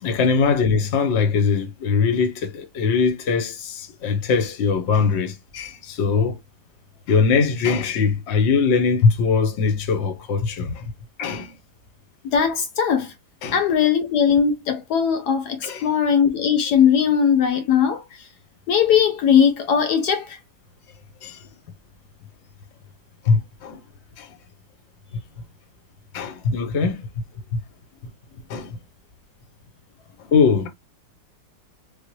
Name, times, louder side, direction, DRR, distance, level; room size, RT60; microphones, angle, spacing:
voice 1, 0.0-6.4 7.1-10.9 11.2-11.5 13.4-13.6 15.6-15.9 21.2-21.5 23.2-23.8 24.2-24.3 25.1-25.2 26.1-27.0 27.5-27.6 28.5-28.8 30.3-30.7, left 5 dB, 50° left, 0.8 m, -21 dB
voice 2, 12.2-13.1 13.5-18.0 18.7-20.4, left 7 dB, 70° left, 1.1 m, -19 dB
3.5 x 2.1 x 3.1 m
omnidirectional pair, 2.0 m